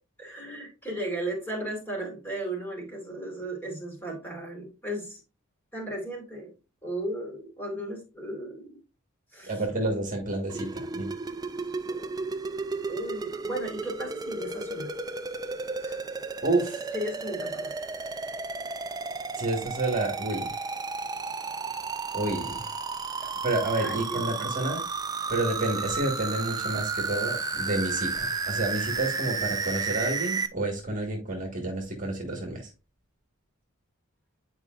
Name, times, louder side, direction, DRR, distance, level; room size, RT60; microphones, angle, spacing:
voice 1, 0.2-5.2 5.7-6.5 6.8-8.8 9.3-9.6 11.9-12.2 12.9-14.9 15.8-16.0 16.9-17.7 23.8-24.5, right 1 dB, 10° left, -1 dB, 2.5 m, -35 dB
voice 2, 9.5-11.1 16.4-16.9 19.3-20.5 22.1-22.7 23.4-24.8 25.3-32.6, right 2 dB, 35° right, 1 dB, 1.5 m, -29 dB
sound 1, 10.5-30.5, right 4 dB, 20° right, 0.3 m, -33 dB
9.6 x 4.7 x 2.4 m, 0.31 s
head